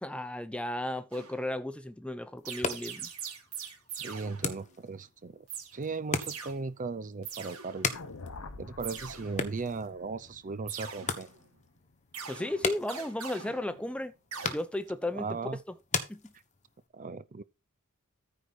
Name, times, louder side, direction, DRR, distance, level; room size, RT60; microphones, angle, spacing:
voice 1, 0.0-3.1 12.3-14.1 14.5-15.3 16.1-16.3, left 1 dB, 5° left, 0.8 m, -34 dB
sound 1, 1.1-1.7 2.4-4.8 5.5-5.7 6.2-6.6 7.2-8.1 8.8-9.7 10.7-11.5 12.1-14.0 14.3-14.5, right 6 dB, 80° right, 2.3 m, -42 dB
sound 2, 2.4-16.9, left 5 dB, 35° left, 1.2 m, -40 dB
voice 2, 3.9-5.5 5.7-7.9 8.6-11.3 15.1-15.6 16.9-17.4, right 4 dB, 35° right, 0.5 m, -37 dB
sound 3, 7.9-12.2, left 3 dB, 75° left, 1.1 m, -48 dB
14.0 x 4.7 x 4.2 m
head